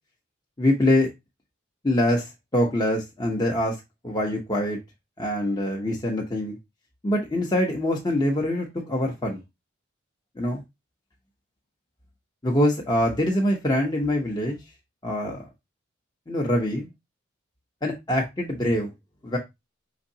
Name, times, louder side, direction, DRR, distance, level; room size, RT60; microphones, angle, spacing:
voice 1, 0.6-1.1 1.8-3.8 4.0-4.8 5.2-6.6 7.0-9.4 10.4-10.6 12.4-14.6 15.0-15.5 16.3-16.9 17.8-18.9 19.2-19.4, left 1 dB, 20° left, 0.8 m, -24 dB
5.0 x 3.5 x 2.7 m
head